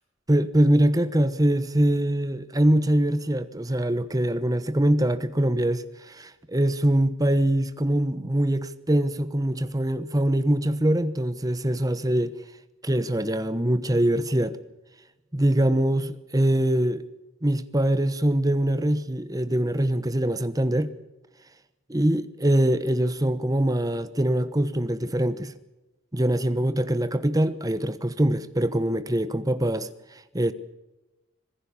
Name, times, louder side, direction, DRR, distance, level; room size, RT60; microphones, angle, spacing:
voice 1, 0.3-12.3 12.8-14.6 15.3-17.0 17.4-20.9 21.9-25.5 26.1-30.5, right 1 dB, 15° right, 1.1 m, -23 dB
26.0 x 17.5 x 7.2 m
head